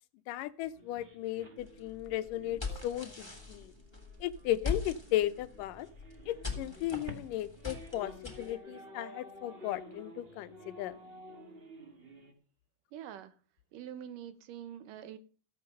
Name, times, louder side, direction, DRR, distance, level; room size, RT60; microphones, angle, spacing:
voice 1, 0.3-3.7 4.2-5.9 6.3-11.0, left 13 dB, 80° left, 2.3 m, -36 dB
sound 1, 0.7-12.3, equal, 35° right, 0.9 m, -51 dB
sound 2, 1.6-8.5, left 5 dB, 10° left, 2.8 m, -42 dB
voice 2, 12.9-13.4 13.7-15.2, right 10 dB, 80° right, 2.5 m, -45 dB
15.0 x 8.7 x 5.3 m
omnidirectional pair, 3.8 m